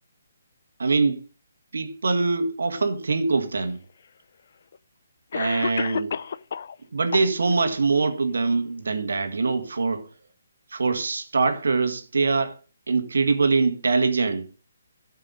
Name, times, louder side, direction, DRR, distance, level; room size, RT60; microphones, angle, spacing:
voice 1, 0.8-1.2 1.7-3.8 5.3-6.2 6.9-10.1 10.7-12.5 12.9-14.5, right 4 dB, 80° right, 1.9 m, -23 dB
Cough, 3.6-3.7 4.7-4.8 5.3-6.7 7.1-7.7, left 7 dB, 55° left, 0.5 m, -31 dB
12.5 x 5.7 x 5.3 m
hypercardioid pair, 155°, 0 cm